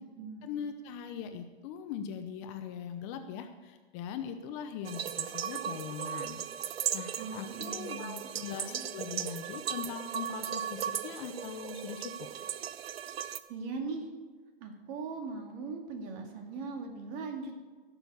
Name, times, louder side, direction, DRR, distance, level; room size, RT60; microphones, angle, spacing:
voice 1, 0.4-6.4 6.9-12.1, left 8 dB, 30° left, 7 dB, 0.8 m, -41 dB
sound 1, 4.8-13.4, right 9 dB, 85° right, 0.8 m, -37 dB
voice 2, 7.2-8.8 13.5-14.1 14.6-17.6, right 4 dB, 35° right, 3 dB, 2.3 m, -40 dB
16.0 x 7.0 x 6.9 m, 1.4 s
hypercardioid pair, 150°, 30 cm